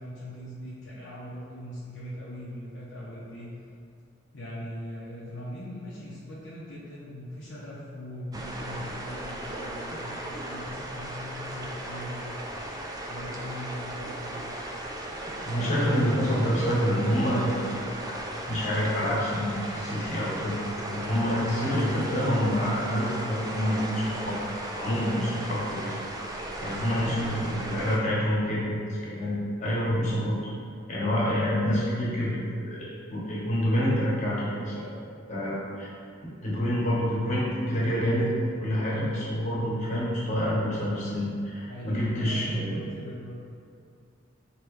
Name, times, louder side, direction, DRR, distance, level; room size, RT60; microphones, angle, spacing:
voice 1, 0.0-3.7 4.3-12.4 13.1-14.5 26.8-28.1 41.7-43.4, left 1 dB, 65° left, -8 dB, 0.7 m, -40 dB
sound 1, 8.3-28.0, right 1 dB, 20° right, 0.3 m, -36 dB
voice 2, 15.4-17.8 18.5-20.5 20.9-24.4 24.7-26.0 26.6-30.3 30.9-34.9 35.3-35.9 36.4-38.3 38.6-42.8, equal, 40° left, -7 dB, 1.1 m, -27 dB
4.7 x 3.0 x 3.1 m, 2.4 s
head